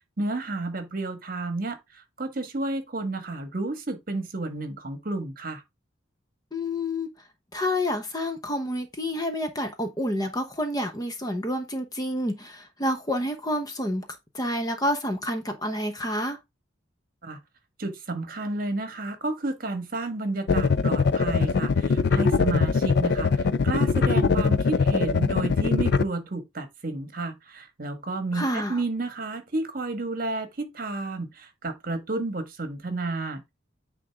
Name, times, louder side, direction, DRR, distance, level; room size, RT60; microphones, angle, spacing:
voice 1, 0.2-5.6 17.2-17.4 17.8-33.5, right 2 dB, 45° right, 1.4 m, -31 dB
voice 2, 6.5-7.1 7.5-14.1 14.3-16.4 28.3-28.8, left 1 dB, 20° left, 0.9 m, -28 dB
sound 1, 20.5-26.0, left 5 dB, 60° left, 0.4 m, -22 dB
9.1 x 3.8 x 3.5 m
head